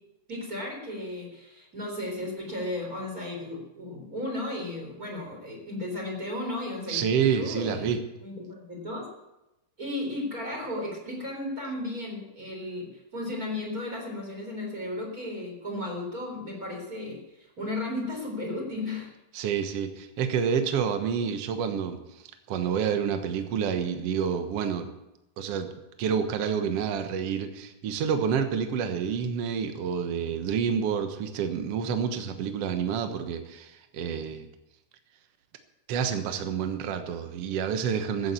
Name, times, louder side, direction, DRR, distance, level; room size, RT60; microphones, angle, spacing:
voice 1, 0.3-7.0 7.3-7.9 8.2-9.1 9.8-19.1, left 1 dB, 20° right, 0 dB, 4.0 m, -34 dB
voice 2, 6.9-8.0 19.3-22.2 22.5-24.9 25.4-25.7 26.0-34.5 35.9-38.3, right 7 dB, 70° right, 7 dB, 1.4 m, -28 dB
14.5 x 8.6 x 8.4 m, 0.94 s
omnidirectional pair, 4.6 m